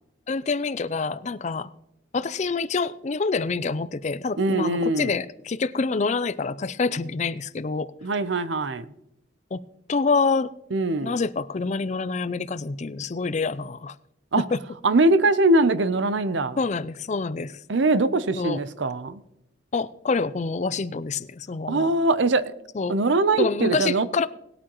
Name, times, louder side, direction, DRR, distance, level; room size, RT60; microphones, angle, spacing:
voice 1, 0.3-1.7 2.1-7.9 9.5-9.6 9.9-10.5 11.0-14.0 14.5-14.6 16.6-17.6 18.3-18.6 19.7-21.9 22.8-23.0 23.4-24.3, left 4 dB, 35° left, 0.4 m, -26 dB
voice 2, 4.4-5.1 8.0-8.9 10.7-11.1 14.3-14.4 14.8-16.6 17.7-19.2 21.7-22.5 22.9-24.1, right 2 dB, 65° right, 0.6 m, -22 dB
20.0 x 8.6 x 3.0 m
head